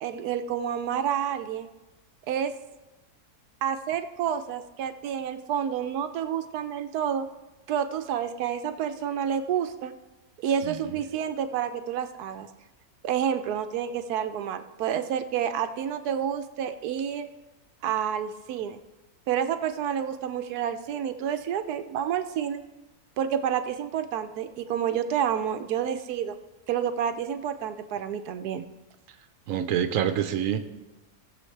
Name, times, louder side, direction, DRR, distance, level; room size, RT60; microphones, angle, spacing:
voice 1, 0.0-1.7 2.3-2.5 3.6-7.3 7.7-9.9 10.4-12.5 13.0-17.3 17.8-18.8 19.3-22.6 23.2-26.4 26.7-28.6, right 9 dB, 85° right, 9 dB, 1.1 m, -29 dB
voice 2, 29.5-30.6, right 9 dB, 65° right, 8 dB, 1.0 m, -26 dB
18.5 x 6.9 x 3.2 m, 1.1 s
omnidirectional pair, 1.6 m